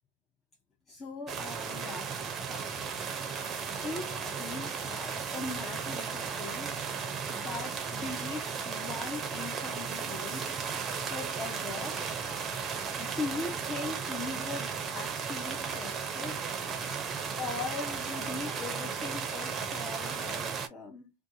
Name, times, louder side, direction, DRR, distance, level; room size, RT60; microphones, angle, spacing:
voice 1, 0.9-2.2 2.5-2.7 3.8-6.8 7.3-10.6 11.1-12.0 13.0-16.4 17.4-21.1, left 3 dB, 20° left, 0.6 m, -40 dB
sound 1, 1.3-20.7, right 6 dB, 25° right, 0.6 m, -35 dB
2.5 x 2.4 x 2.6 m
hypercardioid pair, 105°, 0 cm